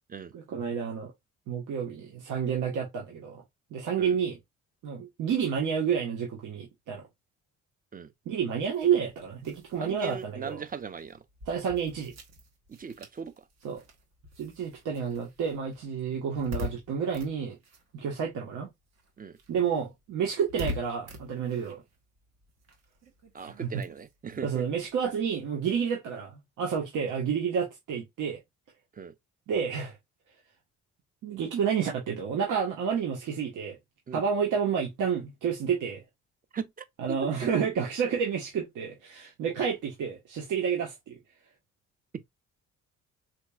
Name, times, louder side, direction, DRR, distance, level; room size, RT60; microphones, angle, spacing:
voice 1, 0.3-1.1 1.5-3.4 3.7-4.4 4.8-7.1 8.2-10.6 11.5-12.1 13.6-13.8 14.4-17.6 17.9-18.7 19.5-21.8 23.4-23.7 24.4-28.4 29.5-30.0 31.2-33.8 34.1-36.0 37.0-41.2, right 7 dB, 80° right, 1.3 m, -30 dB
sound 1, 8.7-18.6 18.9-25.8, left 2 dB, 60° right, 1.5 m, -45 dB
voice 2, 9.8-11.2 12.7-13.4 19.2-19.4 23.3-24.6 28.9-29.1 34.1-34.2 36.5-37.2, right 6 dB, 30° right, 0.7 m, -39 dB
4.3 x 3.0 x 2.4 m
cardioid pair, 90°, 30 cm